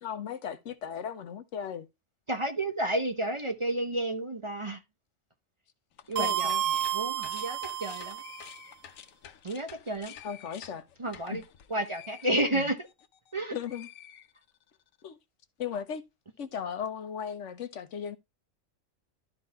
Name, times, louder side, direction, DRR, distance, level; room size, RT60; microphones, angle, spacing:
voice 1, 0.0-1.9 6.2-6.6 10.2-10.9 11.3-11.4 12.5-12.7 13.5-13.9 15.0-15.2 15.6-16.0 16.4-18.2, left 8 dB, 70° left, 1.1 m, -36 dB
voice 2, 2.3-4.8 6.1-6.5 6.9-8.2 9.4-10.2 11.0-11.4 11.7-12.8 13.3-13.5, right 1 dB, 25° right, 0.9 m, -31 dB
sound 1, 5.9-13.3 13.6-14.8, left 9 dB, 90° left, 1.2 m, -50 dB
sound 2, 6.2-8.5, right 11 dB, 75° right, 1.1 m, -31 dB
12.0 x 4.1 x 4.1 m
omnidirectional pair, 1.3 m